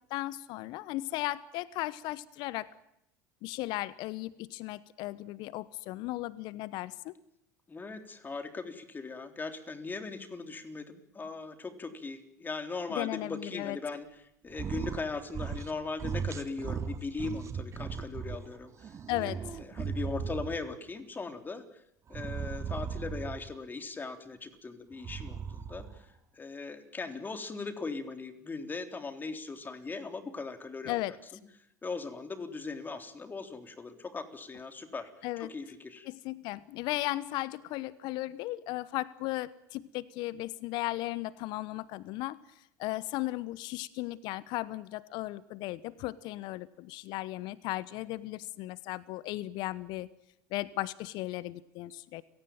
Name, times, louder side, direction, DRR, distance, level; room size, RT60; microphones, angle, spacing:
voice 1, 0.1-2.7 3.4-7.1 12.9-13.8 19.1-19.6 30.8-31.1 35.2-35.5 36.1-42.4 42.8-50.1 50.5-52.2, left 18 dB, 55° left, 19 dB, 1.0 m, -36 dB
voice 2, 7.7-14.1 14.4-19.0 19.2-19.3 19.6-21.8 22.1-31.0 31.8-35.1 35.4-36.1, left 4 dB, 20° left, 7 dB, 3.7 m, -39 dB
sound 1, 14.5-15.0 15.3-15.7 16.0-18.4 18.8-20.7 22.1-23.5 24.9-26.0, right 6 dB, 35° right, 2.4 m, -37 dB
30.0 x 18.0 x 9.2 m, 0.77 s
figure-of-eight pair, 75°, 9 cm